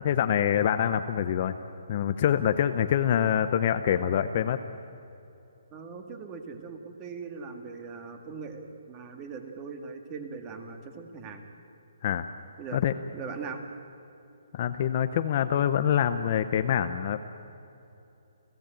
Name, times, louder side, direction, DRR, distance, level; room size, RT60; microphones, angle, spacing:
voice 1, 0.0-1.6 1.9-4.6 12.0-12.3 12.7-12.9 14.5-17.2, left 9 dB, 30° left, 9 dB, 0.6 m, -25 dB
voice 2, 5.7-11.5 12.6-12.8 13.1-13.6, right 5 dB, 15° right, 5 dB, 1.7 m, -40 dB
29.5 x 16.5 x 9.0 m, 2.9 s
hypercardioid pair, 180°, 0 cm